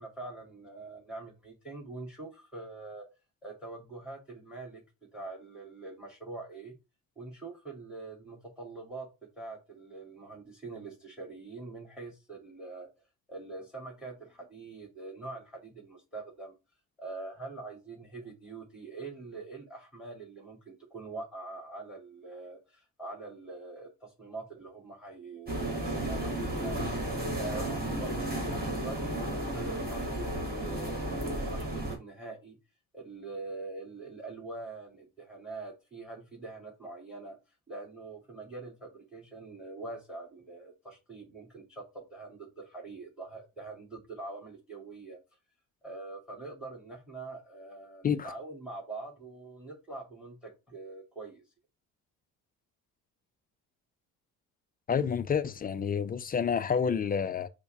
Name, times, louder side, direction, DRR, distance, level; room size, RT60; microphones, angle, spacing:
voice 1, 0.0-3.0 3.4-4.8 5.1-6.7 7.2-9.1 9.4-12.9 13.3-16.6 17.0-26.8 27.4-32.6 32.9-37.4 37.7-45.2 45.8-51.4, right 3 dB, ahead, 2.0 m, -44 dB
sound 1, 25.5-32.0, right 1 dB, 20° right, 1.9 m, -33 dB
voice 2, 54.9-57.5, left 7 dB, 20° left, 0.3 m, -29 dB
4.4 x 2.1 x 4.4 m
hypercardioid pair, 50°, 44 cm